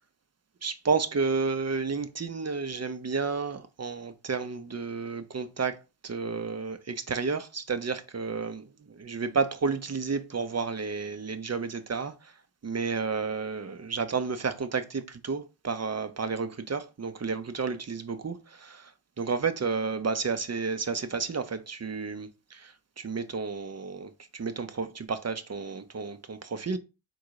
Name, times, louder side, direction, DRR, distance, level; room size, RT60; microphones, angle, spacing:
voice 1, 0.6-5.8 6.0-12.3 12.6-18.9 19.2-26.8, right 5 dB, 30° right, 0.8 m, -31 dB
3.8 x 2.6 x 4.7 m
supercardioid pair, 45°, 49 cm